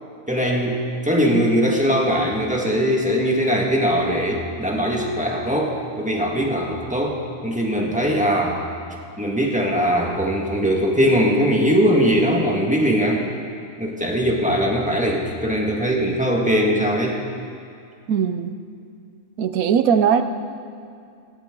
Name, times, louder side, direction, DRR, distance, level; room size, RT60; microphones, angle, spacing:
voice 1, 0.3-7.2 7.4-8.6 9.2-13.2 13.8-17.2, equal, 5° right, -2 dB, 1.6 m, -20 dB
voice 2, 18.1-18.5 19.4-20.2, right 7 dB, 75° right, 10 dB, 1.1 m, -19 dB
18.0 x 16.0 x 3.8 m, 2.4 s
omnidirectional pair, 1.5 m